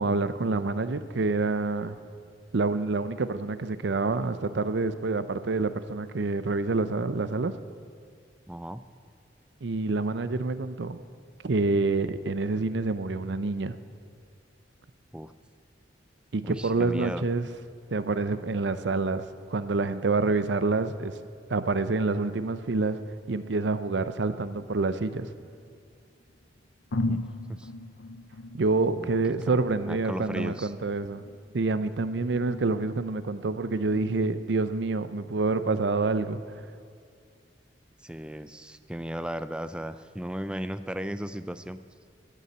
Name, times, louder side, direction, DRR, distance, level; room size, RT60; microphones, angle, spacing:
voice 1, 0.0-2.0 2.5-7.5 9.6-11.0 11.4-13.8 16.3-17.5 17.9-19.2 19.5-21.1 21.5-23.0 23.3-25.3 28.5-31.2 31.5-36.4, right 3 dB, 75° right, 13 dB, 0.6 m, -27 dB
voice 2, 8.5-8.8 15.1-15.3 16.4-17.2 27.0-27.2 27.5-27.7 29.0-29.6 29.9-30.7 38.0-41.8, equal, 5° right, 12 dB, 0.4 m, -36 dB
sound 1, 25.4-25.8 26.4-26.5 26.9-34.4, left 2 dB, 85° left, 0.7 m, -39 dB
13.0 x 7.0 x 8.5 m, 2.3 s
head